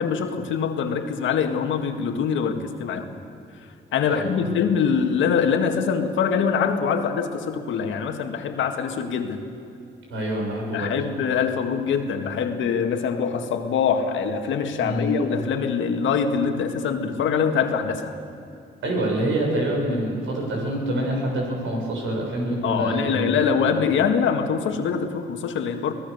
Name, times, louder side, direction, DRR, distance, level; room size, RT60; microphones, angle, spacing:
voice 1, 0.0-3.1 3.6-3.7 3.9-9.4 10.7-18.2 22.6-25.9, left 6 dB, 75° left, 6 dB, 1.9 m, -24 dB
voice 2, 4.1-4.4 10.1-10.9 14.8-15.2 18.8-23.3, right 1 dB, 80° right, -1 dB, 7.2 m, -26 dB
24.5 x 18.5 x 6.8 m, 2.6 s
cardioid pair, 90°, 20 cm